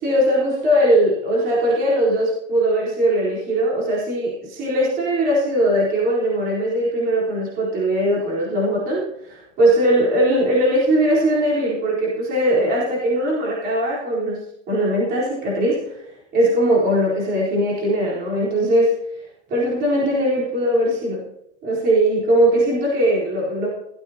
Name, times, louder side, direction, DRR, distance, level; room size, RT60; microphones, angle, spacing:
voice 1, 0.0-16.0 16.3-18.9 19.5-21.2 21.6-23.7, right 1 dB, 20° right, -5 dB, 4.1 m, -20 dB
16.5 x 15.5 x 2.9 m, 0.79 s
supercardioid pair, 165°, 41 cm